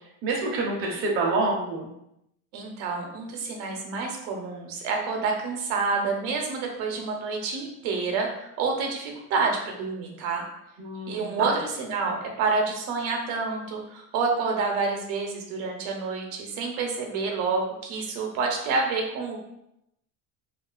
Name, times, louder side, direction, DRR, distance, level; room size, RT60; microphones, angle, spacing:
voice 1, 0.2-1.9 10.8-11.6, right 3 dB, 35° right, -1 dB, 0.5 m, -27 dB
voice 2, 2.5-10.4 11.1-19.4, right 4 dB, 75° right, 1 dB, 0.7 m, -28 dB
2.4 x 2.3 x 2.3 m, 0.81 s
supercardioid pair, 120°, 40 cm